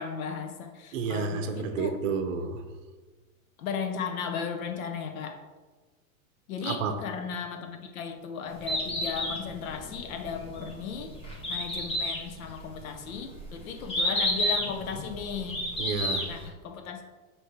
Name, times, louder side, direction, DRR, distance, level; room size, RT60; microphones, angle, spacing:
voice 1, 0.0-2.0 3.6-5.4 6.5-11.1 11.5-15.6 16.3-17.0, left 6 dB, 75° left, 1.1 m, -36 dB
voice 2, 0.9-2.6 6.7-7.0 15.8-16.3, right 5 dB, 65° right, 0.9 m, -30 dB
Bird, 8.5-16.5, left 1 dB, 15° left, 1.0 m, -31 dB
6.5 x 3.2 x 4.7 m
supercardioid pair, 145°, 42 cm